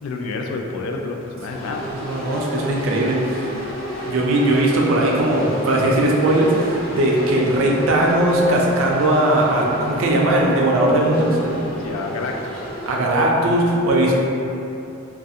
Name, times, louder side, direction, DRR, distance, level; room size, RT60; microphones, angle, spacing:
voice 1, 0.0-1.8 11.8-12.6, left 3 dB, 90° left, 2 dB, 0.3 m, -28 dB
sound 1, 1.5-13.0, equal, 75° left, 0.7 m, -32 dB
voice 2, 1.9-3.5 4.1-11.7 12.9-14.1, right 1 dB, 75° right, -2 dB, 0.4 m, -19 dB
2.4 x 2.3 x 2.6 m, 2.8 s
head